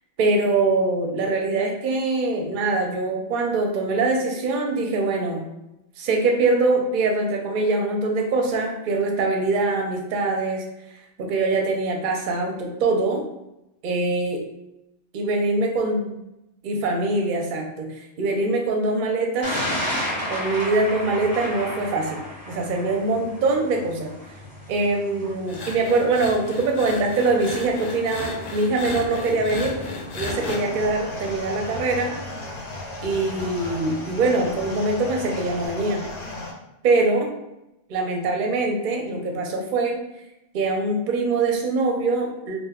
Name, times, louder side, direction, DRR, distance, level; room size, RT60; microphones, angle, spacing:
voice 1, 0.2-5.4 6.0-10.7 11.2-13.2 13.8-14.4 15.1-16.2 16.6-19.6 20.3-22.2 22.5-24.1 24.7-29.8 30.1-32.1 33.0-36.0 36.8-37.3 37.9-40.0 40.5-42.6, right 3 dB, 55° right, 2 dB, 0.6 m, -23 dB
Thunder, 19.4-35.7, left 1 dB, 20° left, 0.7 m, -36 dB
sound 1, 25.5-30.6, left 3 dB, 85° left, 0.9 m, -34 dB
sound 2, 30.2-36.5, left 2 dB, 55° left, 0.7 m, -35 dB
2.5 x 2.1 x 3.5 m, 0.89 s
omnidirectional pair, 1.2 m